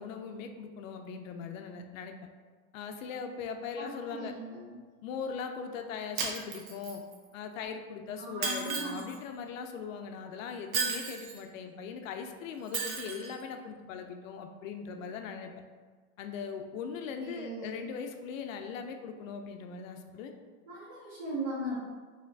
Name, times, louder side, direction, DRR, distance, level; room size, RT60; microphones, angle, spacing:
voice 1, 0.0-2.1 2.7-4.3 5.0-7.0 7.3-15.5 16.2-20.3, left 6 dB, 70° left, 5 dB, 0.5 m, -40 dB
voice 2, 3.8-4.8 8.2-9.0 17.2-17.8 20.7-21.8, right 1 dB, 20° right, -5 dB, 0.4 m, -38 dB
Shatter, 6.2-7.2 8.4-9.2 10.7-11.4 12.7-13.3, right 5 dB, 80° right, 0.8 m, -34 dB
4.1 x 3.1 x 2.6 m, 1.4 s
supercardioid pair, 170°, 41 cm